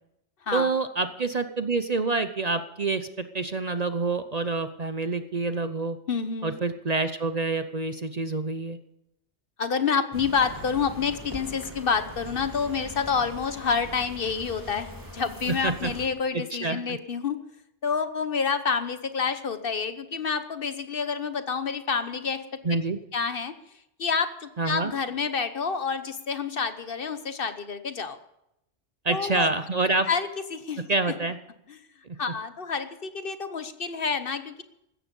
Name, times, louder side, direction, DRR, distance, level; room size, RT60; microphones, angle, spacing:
voice 1, 0.5-6.0 6.4-8.8 15.6-15.9 16.3-17.0 22.6-23.0 24.6-24.9 29.0-30.1 30.9-31.4 32.0-32.2, right 3 dB, 40° right, 10 dB, 0.8 m, -27 dB
voice 2, 6.1-6.6 9.6-14.9 15.1-17.4 17.8-22.4 23.1-23.6 24.0-28.2 29.1-29.5 30.1-30.8 31.7-31.8 32.2-34.6, left 5 dB, 55° left, 11 dB, 1.1 m, -28 dB
sound 1, 10.1-16.1, equal, 15° right, 2.8 m, -42 dB
16.0 x 13.5 x 5.4 m, 0.82 s
omnidirectional pair, 1.2 m